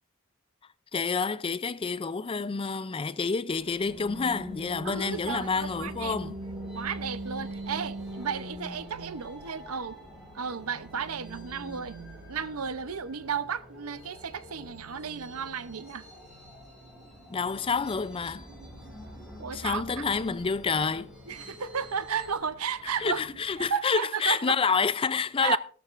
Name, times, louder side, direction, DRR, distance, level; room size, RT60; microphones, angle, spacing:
voice 1, 0.9-6.4 17.3-18.5 19.5-21.1 23.0-25.6, left 5 dB, 25° left, 0.4 m, -28 dB
sound 1, 3.5-22.4, equal, 5° right, 5.2 m, -49 dB
sound 2, 3.9-23.7, right 1 dB, 40° right, 2.1 m, -45 dB
voice 2, 4.8-6.1 6.7-10.0 10.3-12.0 12.3-16.1 19.4-20.1 21.3-23.2 23.6-24.6 25.4-25.6, right 6 dB, 85° right, 0.7 m, -33 dB
15.0 x 13.0 x 2.5 m
head